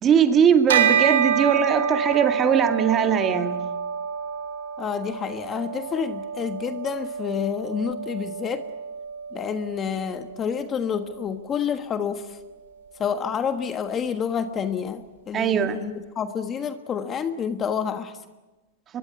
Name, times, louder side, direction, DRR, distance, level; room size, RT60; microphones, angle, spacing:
voice 1, 0.0-3.6 15.3-15.9, right 7 dB, 25° right, 7 dB, 2.1 m, -20 dB
Bell, 0.7-10.4, right 7 dB, 80° right, 4.0 m, -27 dB
voice 2, 4.8-8.6 9.3-12.4 13.0-18.2, left 7 dB, 20° left, 9 dB, 1.4 m, -29 dB
24.0 x 22.0 x 9.2 m, 1.1 s
hypercardioid pair, 135°, 0 cm